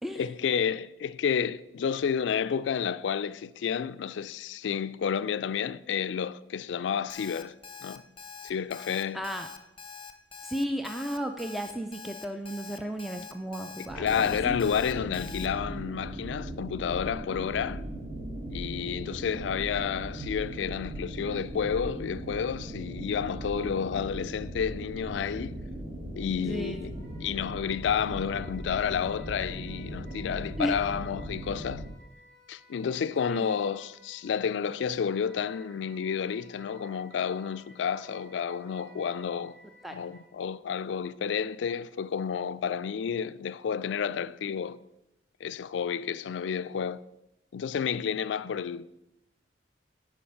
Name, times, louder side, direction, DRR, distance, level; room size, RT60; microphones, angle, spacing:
voice 1, 0.2-7.5 7.8-8.0 8.4-9.2 14.0-17.8 18.5-25.6 26.2-26.9 27.2-31.8 32.5-39.6 39.9-44.8 45.4-47.0 47.5-48.9, left 7 dB, 80° left, 0.3 m, -30 dB
Alarm, 7.1-15.5, left 6 dB, 30° left, 0.7 m, -45 dB
voice 2, 9.1-9.5 10.4-14.6 26.4-26.9 30.6-30.7 33.3-33.6 39.8-40.0, equal, ahead, 0.3 m, -34 dB
sound 1, 13.9-31.9, right 1 dB, 40° right, 1.1 m, -39 dB
Wind instrument woodwind instrument, 26.5-40.3, equal, 70° right, 2.4 m, -57 dB
8.5 x 5.0 x 5.6 m
head